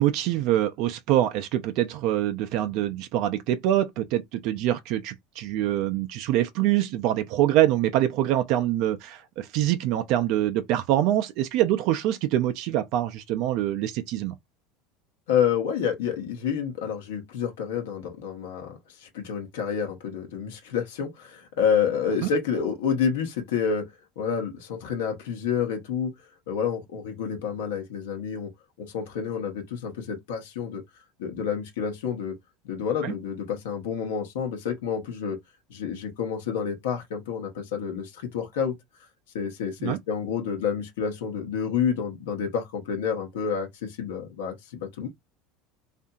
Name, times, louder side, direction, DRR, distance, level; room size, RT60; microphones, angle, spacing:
voice 1, 0.0-14.4 33.0-33.1 39.8-40.0, right 13 dB, 65° right, 0.4 m, -25 dB
voice 2, 15.3-23.9 24.2-26.1 26.5-28.5 28.8-30.8 31.2-32.3 32.6-35.4 35.7-38.7 39.3-45.1, left 7 dB, 80° left, 0.8 m, -29 dB
2.7 x 2.5 x 2.2 m
hypercardioid pair, 90°, 0 cm